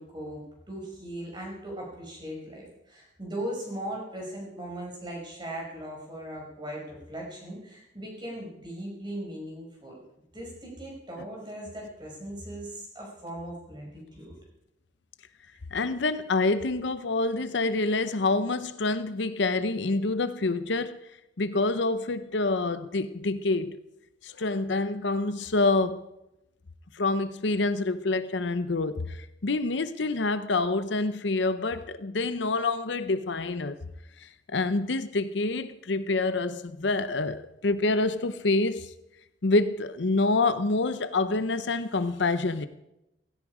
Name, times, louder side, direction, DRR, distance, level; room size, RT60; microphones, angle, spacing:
voice 1, 0.0-10.0 10.3-14.3, right 1 dB, 25° right, 5.6 m, -39 dB
voice 2, 15.7-21.0 21.4-23.8 24.2-26.1 26.9-33.8 34.2-38.9 39.4-42.7, left 3 dB, 70° left, 0.8 m, -27 dB
16.5 x 16.5 x 4.9 m
head